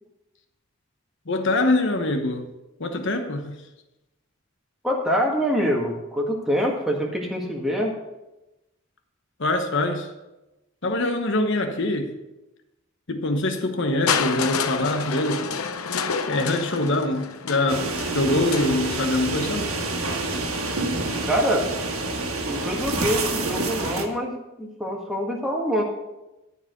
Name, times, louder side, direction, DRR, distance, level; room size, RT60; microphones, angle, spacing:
voice 1, 1.3-2.5 2.8-3.6 9.4-10.1 10.8-12.1 13.1-15.5 16.3-19.9, left 2 dB, 55° left, 1.0 m, -24 dB
voice 2, 4.8-8.0 21.3-21.7 22.5-25.8, equal, ahead, 1.6 m, -25 dB
Crushing, 14.1-20.0 20.9-21.0, left 6 dB, 85° left, 0.7 m, -29 dB
sound 1, 17.7-24.1, right 2 dB, 80° right, 1.5 m, -27 dB
13.0 x 4.8 x 6.6 m
head